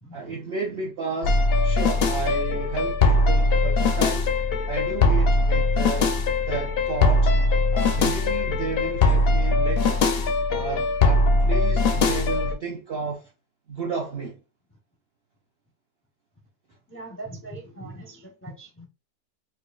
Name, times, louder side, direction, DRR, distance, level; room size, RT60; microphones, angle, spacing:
voice 1, 0.1-4.3 4.7-6.1 6.5-7.3 7.7-10.0 10.5-13.2 13.7-14.4, right 4 dB, 65° right, 0.6 m, -32 dB
sound 1, 1.2-12.5, left 2 dB, 70° left, 0.6 m, -21 dB
voice 2, 16.9-18.9, right 2 dB, 20° left, 0.3 m, -40 dB
5.0 x 2.4 x 2.3 m
omnidirectional pair, 1.6 m